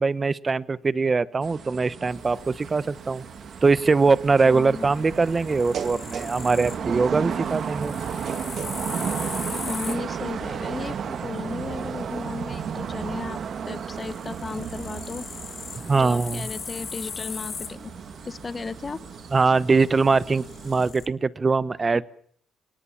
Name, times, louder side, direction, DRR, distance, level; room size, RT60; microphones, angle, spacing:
voice 1, 0.0-3.2 3.6-7.9 15.8-16.5 19.3-22.0, right 4 dB, 30° right, 18 dB, 0.9 m, -22 dB
sound 1, 1.4-20.9, right 7 dB, 60° right, 1.5 m, -34 dB
sound 2, 2.1-21.1, left 6 dB, 50° left, 1.5 m, -41 dB
voice 2, 4.4-4.9 9.5-13.4 13.7-15.3 15.9-17.9 18.2-19.0, left 4 dB, 30° left, 16 dB, 1.1 m, -35 dB
29.5 x 18.5 x 7.2 m, 0.62 s
cardioid pair, 90°, 0 cm